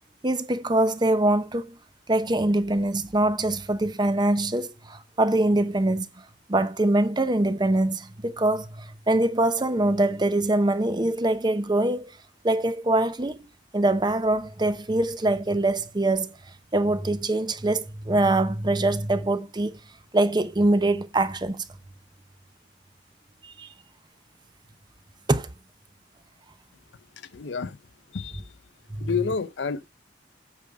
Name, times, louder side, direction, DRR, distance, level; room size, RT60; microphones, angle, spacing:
voice 1, 0.2-1.8 2.1-6.1 6.5-12.1 12.4-13.4 13.7-16.3 16.7-19.8 20.1-21.6 23.4-23.7 25.3-25.5 28.9-29.1, right 2 dB, 25° right, 0.7 m, -23 dB
voice 2, 27.2-27.8 28.1-28.6 29.0-29.9, left 5 dB, 75° left, 0.6 m, -30 dB
8.5 x 6.0 x 5.0 m
head